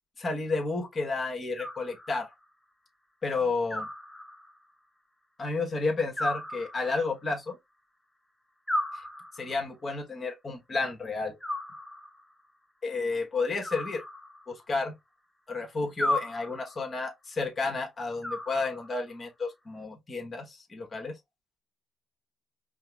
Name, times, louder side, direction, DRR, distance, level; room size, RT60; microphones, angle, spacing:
voice 1, 0.2-2.3 3.2-3.9 5.4-7.6 9.4-11.3 12.8-14.0 14.5-14.9 15.5-21.1, left 3 dB, 40° left, 1.2 m, -31 dB
Animal, 1.6-2.4 3.7-4.7 6.2-7.2 8.7-9.7 11.4-12.3 13.6-14.7 16.0-16.9 18.2-19.1, left 1 dB, 10° left, 0.7 m, -35 dB
5.1 x 2.1 x 2.3 m
cardioid pair, 90°, 0 cm